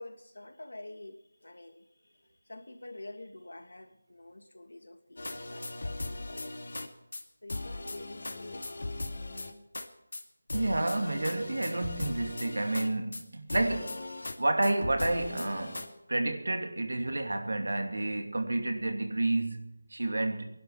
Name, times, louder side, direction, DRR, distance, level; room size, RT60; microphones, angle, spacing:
voice 1, 0.0-6.5 7.4-8.6, left 2 dB, 85° left, 2.5 m, -48 dB
sound 1, 5.2-6.9 7.1-7.2 7.5-9.9 10.1-10.2 10.5-13.2 13.5-14.4 14.6-15.9, left 2 dB, 65° left, 2.4 m, -38 dB
voice 2, 10.5-14.1 14.4-20.6, right 2 dB, 75° right, 2.7 m, -30 dB
20.0 x 11.5 x 5.7 m
figure-of-eight pair, 175°, 0 cm